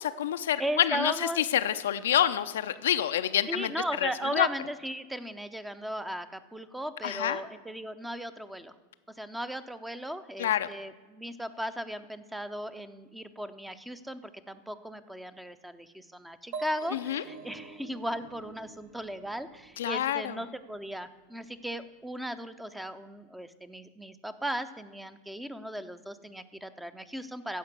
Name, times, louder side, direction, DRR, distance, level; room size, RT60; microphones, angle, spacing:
voice 1, 0.0-3.7 4.0-4.5 7.0-7.4 10.4-10.7 16.9-17.2 19.8-20.4, left 11 dB, 70° left, 10 dB, 0.5 m, -27 dB
voice 2, 0.6-1.4 3.5-8.7 9.1-27.6, equal, 5° right, 12 dB, 0.7 m, -37 dB
sound 1, 16.5-20.2, right 4 dB, 50° right, 1.2 m, -45 dB
15.0 x 5.2 x 8.1 m, 1.3 s
figure-of-eight pair, 85°, 0 cm